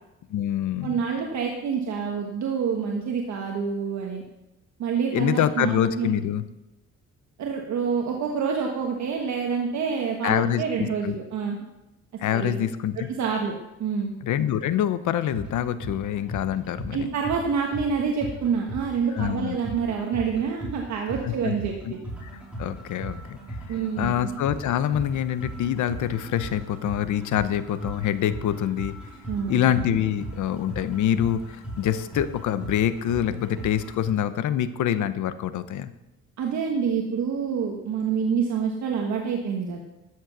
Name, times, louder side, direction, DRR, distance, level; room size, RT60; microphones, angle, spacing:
voice 1, 0.3-0.9 5.1-6.4 10.2-11.2 12.2-13.1 14.2-17.1 19.1-19.6 21.2-21.5 21.8-21.9 22.2-22.3 22.6-23.4 23.7-28.9 29.5-35.9, left 10 dB, 75° left, 13 dB, 0.8 m, -25 dB
voice 2, 0.8-4.2 4.8-6.1 7.4-11.6 12.3-12.5 13.1-14.1 16.9-22.0 23.7-24.3 29.3-29.6 36.4-39.8, right 6 dB, 65° right, 1 dB, 1.4 m, -27 dB
sound 1, 15.2-34.1, right 1 dB, 5° right, 2.9 m, -38 dB
13.0 x 7.7 x 6.0 m, 0.97 s
cardioid pair, 165°, 30 cm